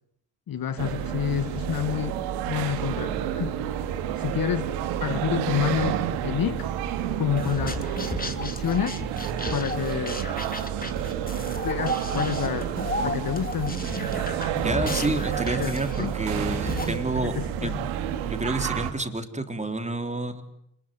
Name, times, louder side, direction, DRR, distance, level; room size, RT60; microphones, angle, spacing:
voice 1, 0.5-2.2 2.5-3.5 4.2-4.7 5.0-6.7 7.2-7.8 8.4-9.0 9.5-10.2 11.6-12.7 13.0-13.8 15.0-15.2 15.6-16.1 17.2-17.8, left 10 dB, 50° left, 14 dB, 1.3 m, -29 dB
sound 1, 0.8-18.9, right 10 dB, 90° right, 2.0 m, -30 dB
sound 2, 7.4-17.0, left 2 dB, 20° left, 3.0 m, -34 dB
voice 2, 14.5-17.4 17.6-17.8 18.2-20.4, right 2 dB, 15° right, 7 dB, 3.6 m, -29 dB
27.5 x 20.5 x 9.5 m, 0.76 s
supercardioid pair, 60°, 44 cm